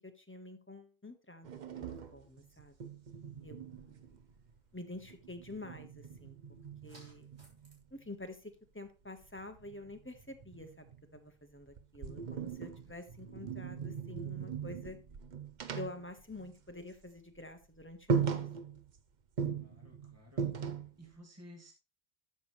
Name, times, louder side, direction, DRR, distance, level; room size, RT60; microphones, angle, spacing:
voice 1, 0.0-2.8 3.4-4.2 4.7-6.4 6.8-7.3 7.9-15.0 15.8-18.4, left 2 dB, 10° left, 6 dB, 1.2 m, -48 dB
sound 1, 1.4-4.6 4.9-7.8 9.2-11.2 11.6-16.9 17.2-17.4 17.7-17.8 18.1-19.0 19.4-21.1, right 6 dB, 50° right, 0.8 m, -39 dB
sound 2, 2.6-7.8, right 1 dB, 85° right, 3.2 m, -67 dB
voice 2, 19.5-20.7 21.0-21.7, equal, 15° right, 2 dB, 1.7 m, -55 dB
11.5 x 7.2 x 3.1 m, 0.30 s
omnidirectional pair, 1.1 m